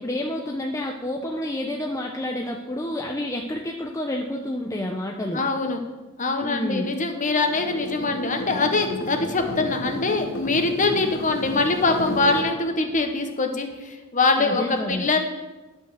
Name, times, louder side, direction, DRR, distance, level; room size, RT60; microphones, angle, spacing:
voice 1, 0.0-5.4 6.4-6.9 14.4-15.1, left 1 dB, 15° left, 1 dB, 0.6 m, -29 dB
voice 2, 5.3-5.8 6.2-15.2, left 3 dB, 35° left, 5 dB, 1.1 m, -23 dB
sound 1, 7.4-12.4, left 1 dB, 60° left, 1.3 m, -32 dB
11.0 x 5.6 x 6.7 m, 1.2 s
head